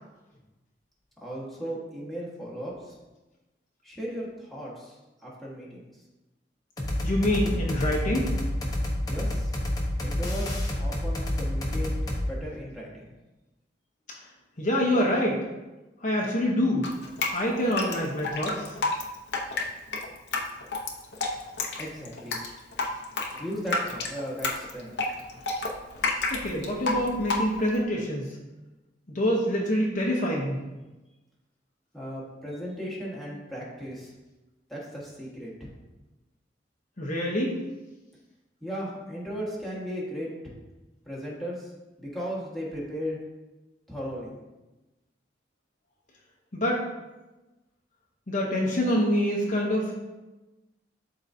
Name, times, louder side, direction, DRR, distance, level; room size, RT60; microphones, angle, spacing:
voice 1, 1.2-3.0 3.8-5.8 9.0-9.5 10.0-11.9 12.3-13.1 21.8-22.4 23.4-24.9 31.9-34.1 34.7-35.7 38.6-40.5 41.0-41.7 42.0-43.2 43.9-44.4, equal, ahead, -6 dB, 1.5 m, -36 dB
sound 1, 6.8-12.3, left 1 dB, 20° left, 0.9 m, -29 dB
voice 2, 7.0-8.3 14.6-15.4 16.0-16.9 17.3-18.7 26.3-28.4 29.1-30.6 37.0-37.6 46.5-46.8 48.3-49.9, equal, 45° left, -2 dB, 0.9 m, -26 dB
Drip, 16.8-27.8, left 3 dB, 70° left, 0.9 m, -30 dB
11.5 x 3.9 x 2.7 m, 1.1 s
head